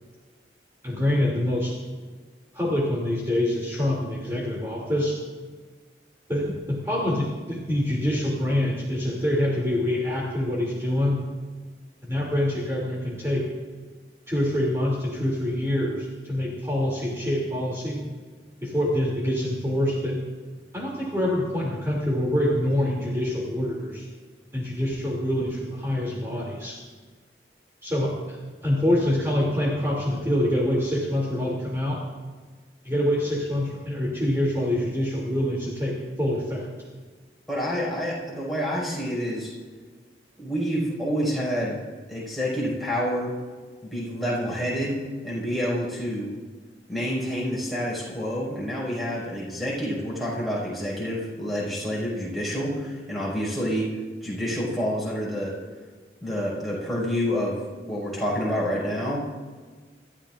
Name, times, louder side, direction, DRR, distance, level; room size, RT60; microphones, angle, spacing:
voice 1, 0.8-1.8 2.5-5.2 6.3-11.2 12.0-13.5 14.3-18.0 18.6-20.2 20.7-24.1 24.5-26.8 27.8-32.0 32.8-36.7, left 1 dB, 15° right, -5 dB, 2.8 m, -25 dB
voice 2, 37.5-39.5 40.4-41.8 42.1-43.3 43.8-45.0 45.2-46.3 46.9-53.9 54.2-55.5 56.2-57.6 57.9-59.2, equal, ahead, -6 dB, 5.4 m, -28 dB
28.0 x 14.0 x 2.5 m, 1.4 s
head